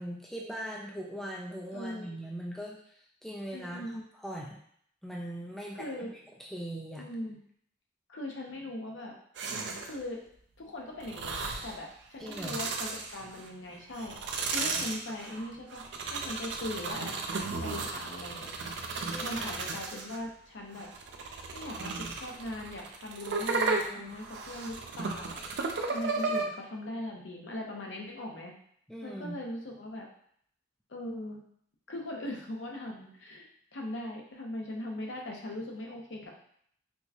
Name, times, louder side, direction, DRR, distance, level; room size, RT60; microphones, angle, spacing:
voice 1, 0.0-3.8 4.1-4.6 5.0-6.1 6.4-7.0 12.2-12.6 19.1-19.6 23.7-24.2 28.9-29.4, equal, ahead, -3 dB, 0.3 m, -40 dB
voice 2, 1.7-2.2 3.5-4.0 5.7-6.2 7.0-7.4 8.1-9.1 9.8-10.2 10.6-14.1 14.5-15.8 16.1-17.1 17.6-18.5 19.0-20.9 21.5-25.4 25.9-28.5 29.0-30.1 30.9-31.4 31.9-33.5 33.7-36.3, left 1 dB, 70° left, 0 dB, 0.7 m, -40 dB
sound 1, 9.4-10.0 11.0-11.8 12.2-13.5 13.9-20.2 20.7-26.4, right 3 dB, 60° right, 0.4 m, -34 dB
4.4 x 2.1 x 2.8 m, 0.65 s
head